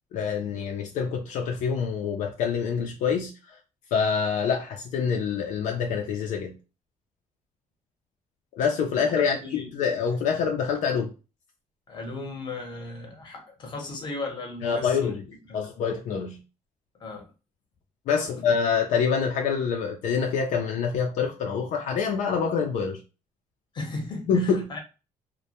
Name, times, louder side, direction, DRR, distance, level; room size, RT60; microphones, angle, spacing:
voice 1, 0.1-3.3 3.9-6.5 8.6-11.1 14.6-15.2 15.5-16.4 18.1-23.0 24.3-24.7, left 6 dB, 70° left, 0.4 m, -26 dB
voice 2, 8.9-9.7 11.9-15.1 15.5-15.6 17.0-17.3 18.2-18.5 23.7-24.8, left 2 dB, 35° left, 0.8 m, -36 dB
2.1 x 2.1 x 2.8 m
cardioid pair, 135°, 13 cm